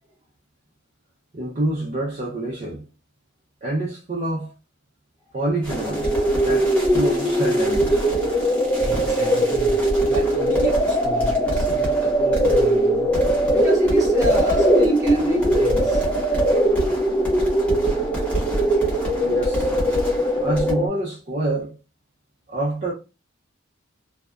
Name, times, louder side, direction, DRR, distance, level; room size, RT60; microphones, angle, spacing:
voice 1, 1.3-2.8 3.6-4.5 5.3-6.1 6.4-8.0 19.2-19.7 20.4-21.8 22.5-22.9, right 2 dB, 35° right, 0.5 m, -26 dB
sound 1, 5.6-20.7, equal, 5° left, 0.9 m, -30 dB
sound 2, 5.7-20.9, right 1 dB, 20° left, 0.4 m, -20 dB
voice 2, 8.7-13.2 13.5-16.0, equal, 15° right, 0.9 m, -31 dB
2.6 x 2.2 x 2.4 m
head